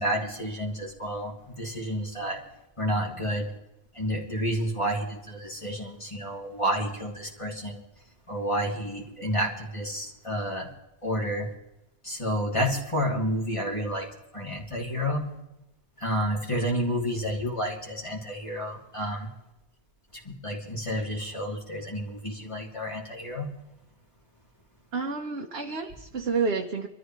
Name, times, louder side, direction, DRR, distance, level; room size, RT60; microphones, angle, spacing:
voice 1, 0.0-2.4 2.8-3.5 3.9-7.8 8.3-10.7 11.0-11.5 12.0-15.3 16.0-19.3 20.1-23.5, equal, 25° left, -2 dB, 3.1 m, -30 dB
voice 2, 24.9-26.9, right 4 dB, 65° right, 1 dB, 1.4 m, -29 dB
25.5 x 14.0 x 3.2 m, 0.95 s
omnidirectional pair, 1.2 m